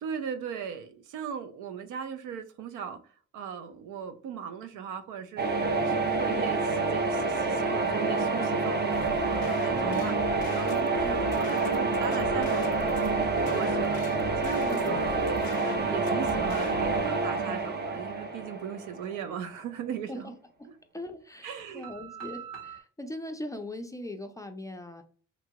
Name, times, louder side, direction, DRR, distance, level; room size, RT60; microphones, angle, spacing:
voice 1, 0.0-3.0 3.3-14.0 14.4-15.5 15.9-20.3 21.4-21.9, right 7 dB, 85° right, 0.5 m, -38 dB
sound 1, 5.4-19.2, right 3 dB, 35° right, 0.6 m, -28 dB
sound 2, 5.7-9.1 9.7-20.4 21.8-22.8, right 2 dB, 55° right, 1.0 m, -45 dB
sound 3, 8.9-17.0, left 6 dB, 80° left, 0.5 m, -43 dB
voice 2, 20.9-25.0, left 1 dB, 10° left, 0.3 m, -40 dB
2.9 x 2.2 x 2.8 m
cardioid pair, 90°, 30 cm